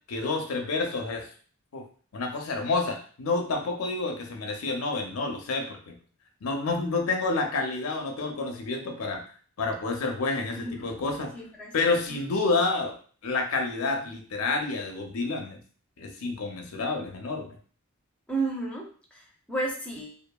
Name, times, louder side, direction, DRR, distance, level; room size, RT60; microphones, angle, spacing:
voice 1, 0.1-1.3 1.7-1.8 2.1-6.0 6.4-9.2 9.6-11.3 11.7-13.0 13.2-15.6 16.0-17.5, left 3 dB, 80° left, 3 dB, 0.5 m, -29 dB
voice 2, 10.5-11.0 11.3-11.7 18.3-18.8 19.1-20.2, right 2 dB, 5° left, -2 dB, 0.4 m, -32 dB
2.7 x 2.5 x 2.2 m, 0.44 s
head